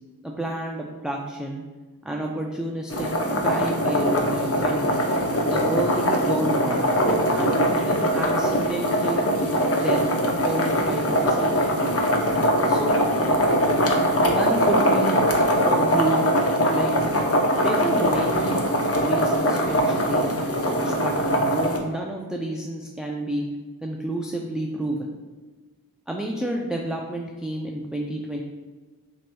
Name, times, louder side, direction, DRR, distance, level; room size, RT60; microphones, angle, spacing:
voice 1, 0.2-1.6 2.0-3.1 3.4-5.1 5.5-6.9 7.3-9.3 9.8-10.0 10.4-11.7 12.7-13.0 14.2-15.2 15.7-16.2 16.7-17.3 17.6-18.6 19.0-23.4 23.8-25.1 26.1-28.4, right 1 dB, ahead, 0 dB, 0.4 m, -30 dB
sound 1, 2.9-21.8, equal, 40° left, 0.7 m, -22 dB
5.9 x 3.0 x 2.2 m, 1.3 s
cardioid pair, 40°, 36 cm